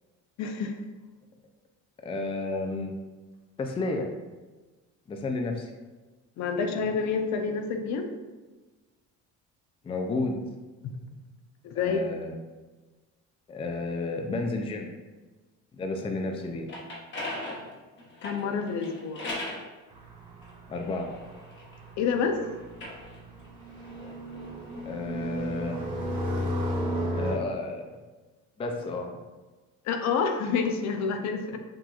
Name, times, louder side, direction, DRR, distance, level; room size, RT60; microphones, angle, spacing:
voice 1, 0.4-0.8 6.4-8.1 11.6-12.1 18.2-19.3 22.0-22.4 29.8-31.6, left 5 dB, 65° left, 5 dB, 0.6 m, -28 dB
voice 2, 2.0-2.9 3.6-4.1 5.1-5.7 9.8-10.4 11.8-12.4 13.5-14.9 15.8-16.7 20.7-21.1 24.9-25.8 27.1-28.0 28.6-29.2, left 3 dB, 20° left, 3 dB, 0.4 m, -31 dB
sound 1, 16.4-19.7 20.4-22.1 22.6-24.9, left 1 dB, 35° left, 1.2 m, -40 dB
sound 2, 19.9-27.4, equal, 25° right, 1.3 m, -34 dB
6.0 x 2.9 x 2.4 m, 1.2 s
cardioid pair, 115°, 31 cm